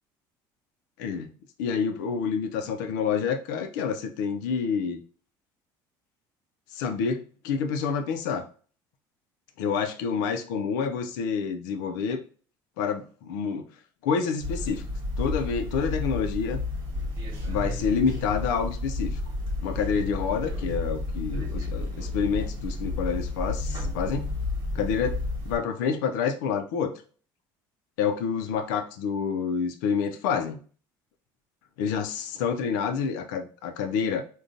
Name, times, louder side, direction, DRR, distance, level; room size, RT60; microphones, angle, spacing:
voice 1, 1.0-1.3 1.6-5.0 6.7-8.4 9.6-12.2 12.8-13.7 14.0-14.8 15.2-16.6 17.5-19.2 19.6-24.3 24.7-26.9 28.0-30.6 31.8-34.2, left 6 dB, 90° left, 7 dB, 0.5 m, -28 dB
sound 1, 14.4-25.6, left 2 dB, 45° right, 1.2 m, -31 dB
3.8 x 2.3 x 2.5 m, 0.41 s
supercardioid pair, 95°, 10 cm